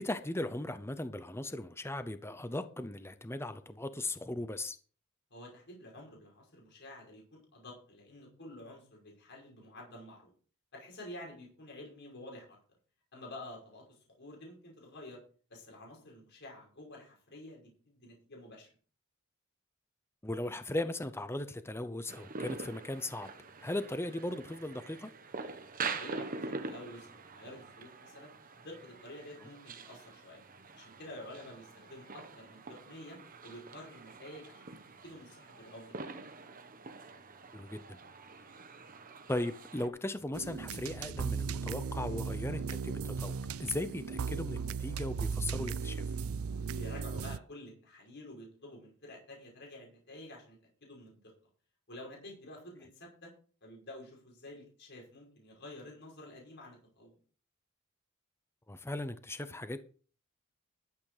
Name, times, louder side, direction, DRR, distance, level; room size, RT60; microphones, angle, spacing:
voice 1, 0.0-4.8 20.2-23.3 23.6-25.1 37.5-38.0 39.3-46.0 58.7-59.8, left 1 dB, 10° left, 0.7 m, -37 dB
voice 2, 5.3-10.3 10.7-12.6 13.1-15.2 15.5-18.7 25.8-28.3 28.6-30.4 30.7-33.2 33.4-34.8 35.0-36.0 46.7-51.2 51.9-53.3 53.6-57.2, left 1 dB, 55° left, 5.9 m, -50 dB
sound 1, 22.1-39.9, right 4 dB, 40° right, 1.2 m, -45 dB
sound 2, 40.3-47.4, right 5 dB, 85° right, 0.5 m, -36 dB
12.5 x 8.7 x 5.0 m
head